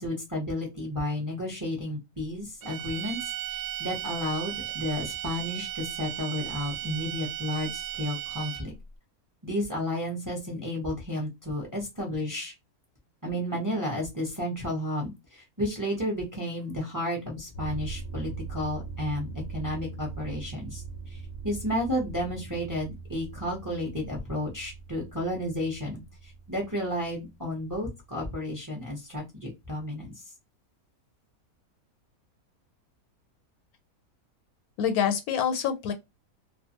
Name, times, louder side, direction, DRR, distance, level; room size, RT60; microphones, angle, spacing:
voice 1, 0.0-8.7 9.4-12.5 13.2-20.8 21.1-30.1, left 1 dB, 20° right, 0.7 m, -32 dB
sound 1, 2.6-8.8, right 13 dB, 75° right, 1.0 m, -36 dB
sound 2, 17.5-28.3, right 4 dB, 60° left, 0.7 m, -41 dB
voice 2, 34.8-35.9, left 8 dB, 85° left, 1.1 m, -26 dB
2.4 x 2.4 x 2.7 m
omnidirectional pair, 1.5 m